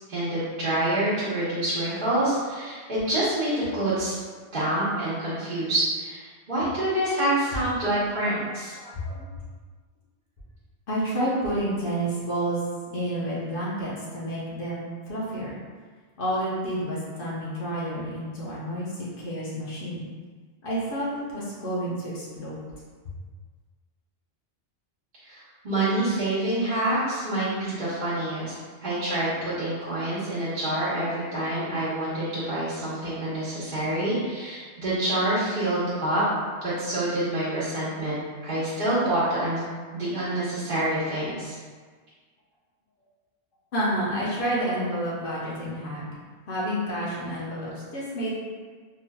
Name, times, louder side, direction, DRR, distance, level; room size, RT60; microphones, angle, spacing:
voice 1, 0.1-4.1 4.5-8.7 25.2-25.4 25.6-28.5 28.8-36.2 36.6-39.7 39.9-41.6, right 1 dB, 40° right, -12 dB, 1.1 m, -27 dB
voice 2, 8.8-9.3 10.9-12.6 12.9-15.6 16.2-20.0 20.6-22.6 43.7-46.0 46.5-48.3, right 1 dB, 50° left, -6 dB, 0.9 m, -29 dB
3.7 x 2.7 x 2.2 m, 1.5 s
omnidirectional pair, 1.2 m